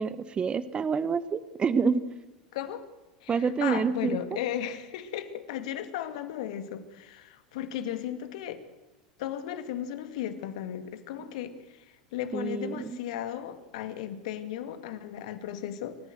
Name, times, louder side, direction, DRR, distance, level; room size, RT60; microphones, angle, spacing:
voice 1, 0.0-2.0 3.3-4.2 12.3-13.0, right 5 dB, 25° right, 15 dB, 1.1 m, -27 dB
voice 2, 2.5-2.9 3.2-8.6 9.2-16.0, left 10 dB, 65° left, 10 dB, 2.2 m, -35 dB
29.0 x 14.0 x 7.9 m, 1.1 s
hypercardioid pair, 85°, 4 cm